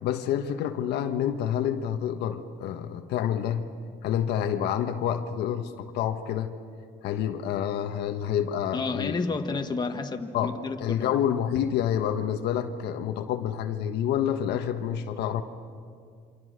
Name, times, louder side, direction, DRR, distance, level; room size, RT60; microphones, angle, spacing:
voice 1, 0.0-3.7 4.0-6.5 7.0-9.2 10.3-15.4, left 9 dB, 80° left, 6 dB, 1.4 m, -28 dB
voice 2, 8.7-11.1, left 4 dB, 25° left, 5 dB, 1.7 m, -31 dB
28.0 x 26.0 x 6.6 m, 2.1 s
cardioid pair, 110°, 17 cm